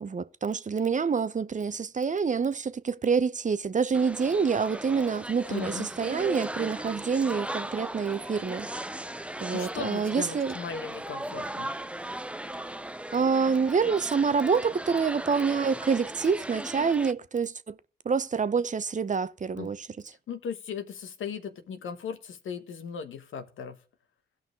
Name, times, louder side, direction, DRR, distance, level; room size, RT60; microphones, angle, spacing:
voice 1, 0.0-8.7 9.4-10.5 13.1-17.8 18.0-19.9, right 5 dB, 35° right, 0.8 m, -27 dB
sound 1, 3.9-17.1, right 1 dB, 5° right, 0.6 m, -37 dB
voice 2, 5.5-5.9 9.5-11.7 19.6-19.7 20.3-23.8, left 6 dB, 75° left, 1.3 m, -37 dB
16.5 x 5.7 x 3.6 m
supercardioid pair, 45°, 21 cm